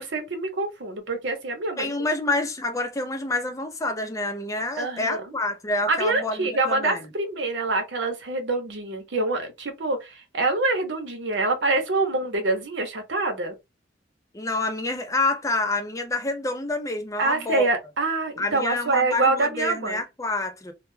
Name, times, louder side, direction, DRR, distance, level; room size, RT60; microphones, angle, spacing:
voice 1, 0.0-2.1 4.8-5.3 5.9-13.6 17.2-20.0, right 3 dB, 70° right, 0.8 m, -26 dB
voice 2, 1.8-7.0 14.3-17.7 18.4-20.7, left 2 dB, 15° left, 0.5 m, -28 dB
2.2 x 2.2 x 3.1 m
head